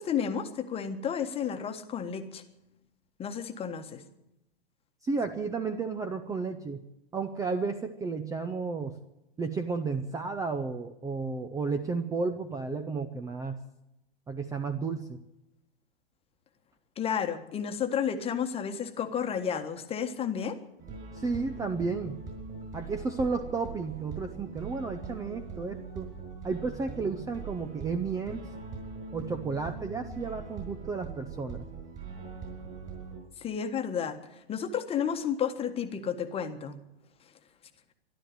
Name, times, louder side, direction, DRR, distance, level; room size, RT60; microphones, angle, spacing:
voice 1, 0.0-2.4 3.2-4.0 17.0-20.6 33.4-36.8, left 7 dB, 20° left, 8 dB, 1.4 m, -32 dB
voice 2, 5.0-6.8 7.1-9.0 9.4-13.6 14.3-15.2 21.1-22.2 22.7-26.1 26.4-28.4 29.1-31.7, right 4 dB, 10° right, 9 dB, 0.7 m, -32 dB
sound 1, 20.8-33.2, right 4 dB, 25° right, 6.3 m, -42 dB
13.5 x 12.0 x 9.2 m, 0.88 s
hypercardioid pair, 125°, 31 cm